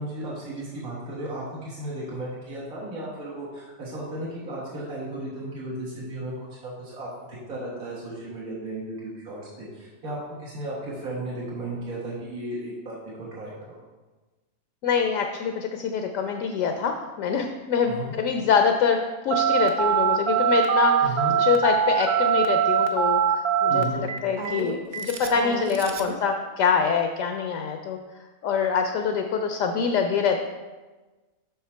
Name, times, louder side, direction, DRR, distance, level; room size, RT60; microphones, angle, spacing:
voice 1, 0.0-7.1 7.5-13.8 17.8-18.1 21.0-21.3 23.7-24.1, right 1 dB, 85° right, -6 dB, 1.8 m, -34 dB
voice 2, 14.8-19.0 19.2-20.9 21.4-28.0 28.4-30.5, left 6 dB, 70° left, 4 dB, 0.9 m, -25 dB
Telephone, 19.3-26.2, right 8 dB, 65° right, 0.5 m, -23 dB
5.9 x 5.7 x 4.4 m, 1.2 s
omnidirectional pair, 1.5 m